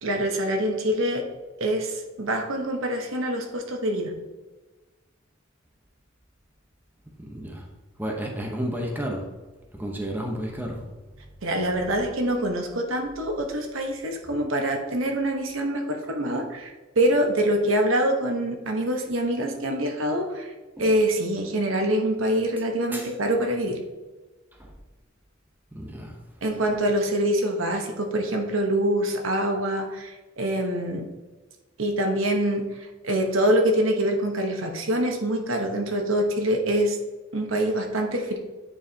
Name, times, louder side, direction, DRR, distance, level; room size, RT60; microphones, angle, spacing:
voice 1, 0.0-1.3 1.6-4.1 11.4-20.5 20.8-23.8 26.4-31.1 31.8-37.0 37.3-38.4, right 1 dB, 85° right, 3 dB, 1.0 m, -25 dB
voice 2, 7.2-7.6 8.0-9.3 9.7-10.8 20.8-20.9 22.9-23.1 24.6-24.7 25.7-26.1, equal, 10° right, 0 dB, 0.9 m, -32 dB
8.9 x 4.7 x 2.8 m, 1.2 s
head